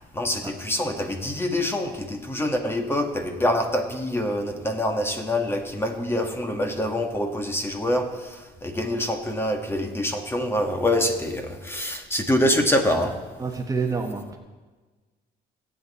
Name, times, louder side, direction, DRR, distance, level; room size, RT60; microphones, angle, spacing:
voice 1, 0.1-13.2, left 1 dB, 15° left, 5 dB, 1.6 m, -25 dB
voice 2, 13.4-14.4, right 4 dB, 20° right, 3 dB, 1.3 m, -28 dB
23.0 x 8.6 x 4.2 m, 1.3 s
cardioid pair, 110°, 17 cm